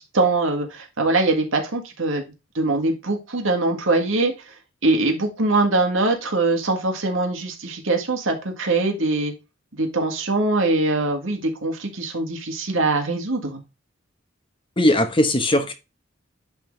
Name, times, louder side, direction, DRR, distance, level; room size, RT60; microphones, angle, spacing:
voice 1, 0.0-2.2 2.6-4.3 4.8-9.3 9.8-13.6, right 2 dB, 70° right, 1.8 m, -22 dB
voice 2, 14.8-15.7, left 1 dB, 25° left, 0.9 m, -19 dB
10.5 x 3.7 x 3.3 m
head